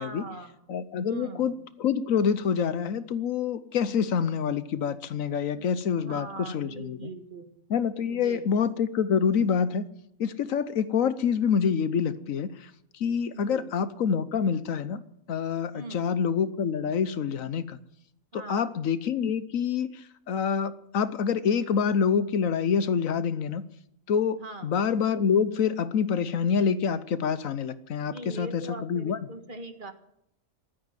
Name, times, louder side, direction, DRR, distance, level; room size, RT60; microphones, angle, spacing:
voice 1, 0.0-0.6 1.0-1.5 5.5-7.5 8.1-8.5 13.3-13.7 15.7-16.1 18.3-18.7 24.4-24.7 28.0-29.9, right 2 dB, 40° right, 7 dB, 1.7 m, -41 dB
voice 2, 0.7-7.1 7.7-9.8 10.2-15.0 15.3-17.8 18.5-23.7 24.1-29.2, left 7 dB, 75° left, 14 dB, 1.3 m, -27 dB
14.5 x 13.0 x 7.5 m, 0.73 s
omnidirectional pair, 1.4 m